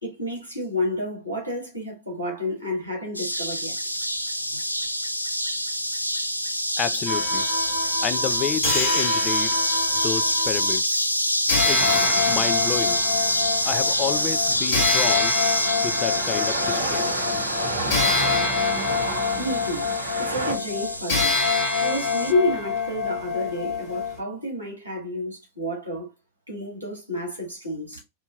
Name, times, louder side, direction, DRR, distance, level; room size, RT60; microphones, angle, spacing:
voice 1, 0.0-3.8 19.4-19.9 20.2-21.4 21.8-26.1 26.5-28.0, left 1 dB, 90° left, 2.2 m, -29 dB
sound 1, 3.1-22.3, equal, 90° right, 0.3 m, -26 dB
voice 2, 6.8-7.5 8.0-9.6 10.0-11.2 11.6-13.0 13.6-15.4 15.8-17.1, left 9 dB, 30° left, 0.3 m, -30 dB
sound 2, 7.1-10.8 11.5-24.2, left 4 dB, 50° left, 1.8 m, -26 dB
sound 3, 11.8-20.5, right 2 dB, 70° right, 0.8 m, -32 dB
5.5 x 2.7 x 2.3 m
figure-of-eight pair, 90°, 0 cm